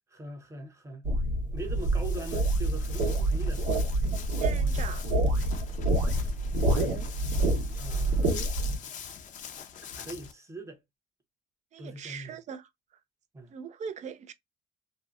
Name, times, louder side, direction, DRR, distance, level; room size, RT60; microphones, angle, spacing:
voice 1, 0.1-1.1 1.5-3.7 7.8-8.5 9.8-10.8 11.8-12.4 13.3-13.5, right 2 dB, 15° right, 0.8 m, -42 dB
sound 1, 1.0-8.8, right 1 dB, 80° right, 1.0 m, -27 dB
Walk footsteps, 1.6-10.3, left 8 dB, 50° left, 0.6 m, -44 dB
voice 2, 4.4-5.1 11.7-12.7 13.5-14.3, right 7 dB, 45° right, 0.4 m, -40 dB
2.7 x 2.1 x 2.3 m
cardioid pair, 110°, 17 cm